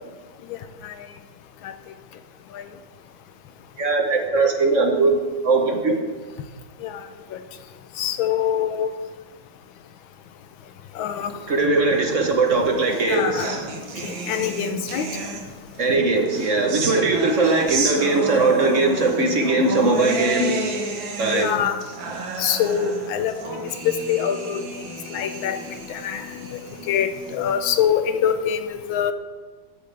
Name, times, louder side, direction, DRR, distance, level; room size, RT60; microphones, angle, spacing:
voice 1, 3.8-5.1 5.4-5.9 11.5-13.6 15.8-20.8 21.2-21.5, right 3 dB, 45° right, 2 dB, 1.2 m, -20 dB
voice 2, 8.0-8.9 11.0-11.3 13.1-13.5 14.0-15.1 21.3-21.8 22.4-23.3 23.8-24.6 25.1-25.6 25.9-26.2 26.9-28.6 28.9-29.1, left 9 dB, 90° left, 9 dB, 1.5 m, -24 dB
sound 1, 12.3-15.8 16.3-27.7, right 3 dB, 75° right, 2.0 m, -31 dB
14.5 x 8.4 x 3.4 m, 1.4 s
omnidirectional pair, 2.1 m